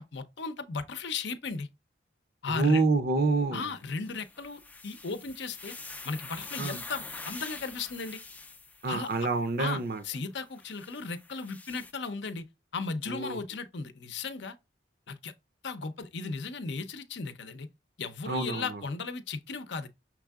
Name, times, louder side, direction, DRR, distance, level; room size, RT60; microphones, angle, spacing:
voice 1, 0.0-1.7 2.4-2.8 3.5-5.8 6.0-8.2 8.9-9.1 9.6-12.5 12.7-14.6 15.1-15.3 15.6-17.7 18.0-19.9, left 4 dB, 70° left, 0.6 m, -36 dB
voice 2, 2.5-3.6 6.6-6.8 8.8-10.0 13.1-13.4 18.3-18.8, right 3 dB, 50° right, 0.6 m, -27 dB
sound 1, 4.0-9.4 10.5-11.9, left 3 dB, 10° left, 0.3 m, -45 dB
6.0 x 3.6 x 2.3 m
head